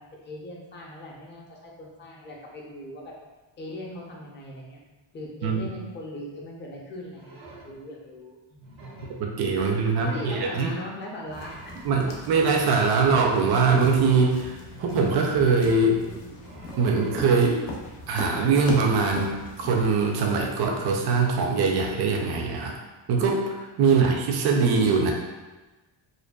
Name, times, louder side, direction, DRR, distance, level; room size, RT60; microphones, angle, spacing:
voice 1, 0.0-3.1 3.6-4.8 5.1-8.8 9.5-11.8, left 1 dB, 25° left, -2 dB, 0.5 m, -40 dB
sound 1, 7.1-7.7 8.5-9.2 9.7-10.7 11.2-11.9 12.2-13.1 13.7-15.6 16.3-17.4 18.2-19.1 20.0-20.5, right 3 dB, 75° right, 0.8 m, -44 dB
voice 2, 9.2-10.7 11.8-16.0 16.8-17.6 18.1-22.8 23.1-25.1, right 4 dB, 55° right, 1 dB, 0.5 m, -22 dB
sound 2, 11.3-19.9, left 1 dB, 85° left, 0.6 m, -40 dB
2.5 x 2.2 x 2.2 m, 1.2 s
cardioid pair, 105°, 47 cm